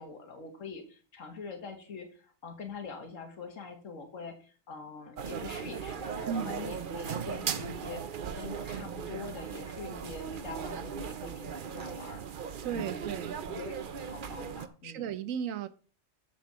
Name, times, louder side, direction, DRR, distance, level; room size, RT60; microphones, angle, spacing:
voice 1, 0.0-12.2 12.7-13.2 13.5-13.7 14.0-15.0, left 4 dB, 75° left, 1.9 m, -44 dB
sound 1, 5.2-14.7, right 7 dB, 50° right, 0.8 m, -38 dB
voice 2, 12.6-13.4 14.8-15.7, right 8 dB, 90° right, 1.0 m, -35 dB
7.4 x 5.6 x 6.8 m
omnidirectional pair, 1.3 m